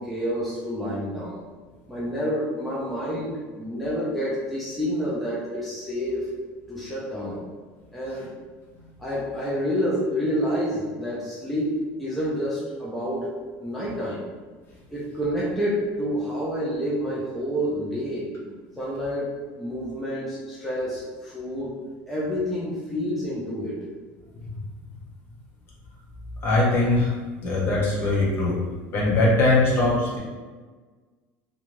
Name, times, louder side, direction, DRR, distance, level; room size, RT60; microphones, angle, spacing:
voice 1, 0.0-1.4 1.9-6.2 6.7-7.4 7.9-8.3 9.0-13.3 13.6-14.2 14.9-21.8 22.1-23.8, equal, ahead, -7 dB, 0.5 m, -28 dB
voice 2, 26.4-27.1 27.4-28.6 28.9-30.2, left 2 dB, 40° left, -5 dB, 0.9 m, -21 dB
2.6 x 2.2 x 3.1 m, 1.4 s
cardioid pair, 150°, 6 cm